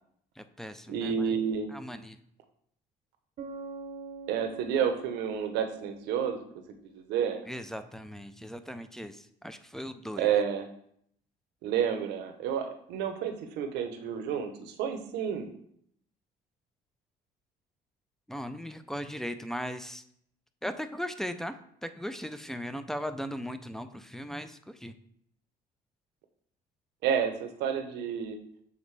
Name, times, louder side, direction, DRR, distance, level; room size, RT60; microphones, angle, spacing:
voice 1, 0.4-1.4 1.7-2.2 7.5-10.3 18.3-20.0 20.6-24.9, equal, ahead, 10 dB, 0.4 m, -38 dB
voice 2, 0.9-1.7 4.3-6.4 6.9-7.4 10.2-10.7 11.6-15.5 27.0-28.4, right 8 dB, 85° right, 7 dB, 0.8 m, -30 dB
Bass guitar, 3.4-7.0, right 4 dB, 50° right, 0.7 m, -45 dB
7.2 x 4.0 x 3.2 m, 0.69 s
cardioid pair, 110°, 17 cm